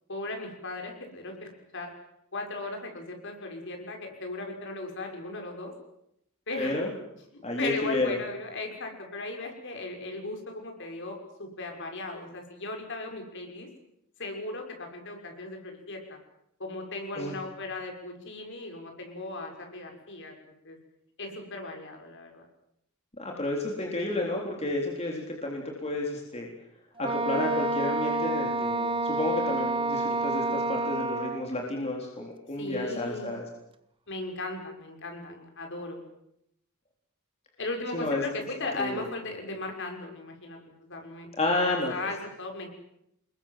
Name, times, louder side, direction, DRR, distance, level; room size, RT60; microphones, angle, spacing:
voice 1, 0.1-1.9 2.3-5.7 6.5-6.8 7.6-13.7 14.2-16.2 16.6-20.3 20.6-20.8 21.2-22.5 32.5-33.3 34.1-36.0 37.6-42.7, left 2 dB, 60° left, 3 dB, 6.2 m, -37 dB
voice 2, 6.6-6.9 7.4-8.1 17.2-17.3 23.2-26.5 27.0-33.4 37.9-38.2 38.8-39.0 41.4-41.9, left 2 dB, 30° left, 0 dB, 3.9 m, -31 dB
Wind instrument woodwind instrument, 27.0-31.5, right 3 dB, 25° right, 1.3 m, -29 dB
28.5 x 21.5 x 7.7 m, 0.78 s
head